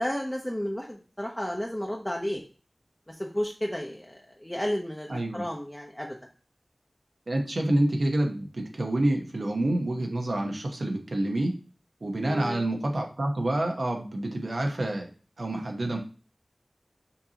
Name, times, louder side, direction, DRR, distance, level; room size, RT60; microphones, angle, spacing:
voice 1, 0.0-2.4 3.1-6.2 12.2-12.6, equal, 15° left, -1 dB, 0.7 m, -32 dB
voice 2, 5.1-5.5 7.3-11.6 12.0-15.1 15.4-16.0, right 1 dB, 80° right, 2 dB, 0.9 m, -28 dB
5.6 x 2.8 x 2.8 m, 0.36 s
wide cardioid pair, 40°, 0 cm